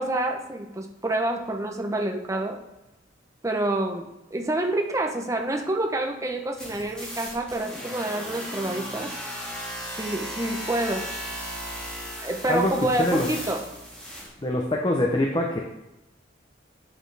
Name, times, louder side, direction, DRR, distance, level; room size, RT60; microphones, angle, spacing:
voice 1, 0.0-2.6 3.4-9.2 10.0-11.1 12.2-13.7, right 1 dB, 15° right, 3 dB, 0.7 m, -28 dB
sound 1, 6.6-14.3, equal, 5° left, 1.8 m, -36 dB
voice 2, 12.5-13.3 14.4-15.6, left 1 dB, 25° left, 1 dB, 0.7 m, -24 dB
8.7 x 6.6 x 3.3 m, 0.94 s
head